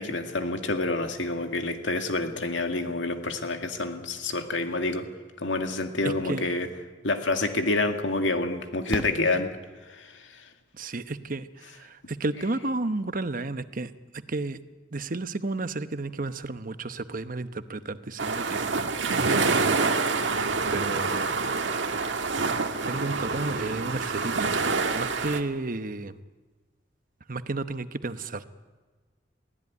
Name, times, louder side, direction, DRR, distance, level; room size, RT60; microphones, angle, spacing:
voice 1, 0.0-5.1 5.4-6.7 7.0-9.5 9.9-10.4, left 2 dB, 85° left, 6 dB, 2.2 m, -28 dB
voice 2, 6.0-6.4 10.7-14.6 14.9-21.2 22.9-24.6 24.9-26.2 27.3-28.5, right 2 dB, 50° right, 11 dB, 1.0 m, -33 dB
Fireworks, 7.2-7.3 8.9-10.2 12.0-12.1 12.3-12.4, equal, 5° right, 1.1 m, -37 dB
sound 1, 18.2-25.4, right 4 dB, 80° right, 1.6 m, -27 dB
22.0 x 16.0 x 9.7 m, 1.3 s
head